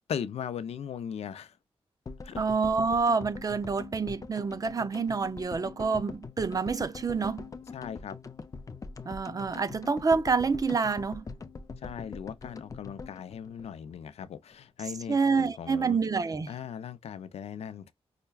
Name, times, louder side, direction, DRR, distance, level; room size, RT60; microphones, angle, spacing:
voice 1, 0.1-1.5 2.2-2.4 7.7-8.2 11.8-16.0 16.5-17.9, left 8 dB, 75° left, 0.5 m, -38 dB
sound 1, 2.1-14.3 14.5-14.6 14.8-14.9, left 4 dB, 30° left, 0.5 m, -43 dB
voice 2, 2.4-7.5 9.1-11.3 15.1-16.6, right 4 dB, 35° right, 0.5 m, -27 dB
5.6 x 2.2 x 2.3 m
cardioid pair, 85°, 11 cm